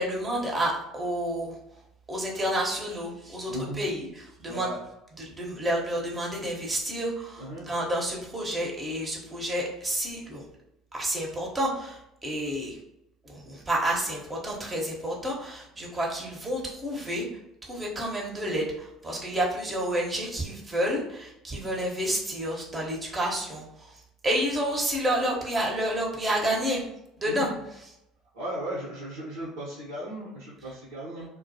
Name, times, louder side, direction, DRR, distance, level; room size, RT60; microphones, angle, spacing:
voice 1, 0.0-1.6 2.1-4.7 5.2-10.4 10.9-12.8 13.2-17.3 17.6-26.8 27.2-27.5, right 1 dB, 25° right, -2 dB, 0.8 m, -30 dB
voice 2, 3.5-3.8 4.5-4.8 7.4-7.7 27.2-27.4 28.3-31.2, right 1 dB, 85° right, -7 dB, 0.8 m, -36 dB
2.2 x 2.2 x 2.7 m, 0.85 s
hypercardioid pair, 65°, 0 cm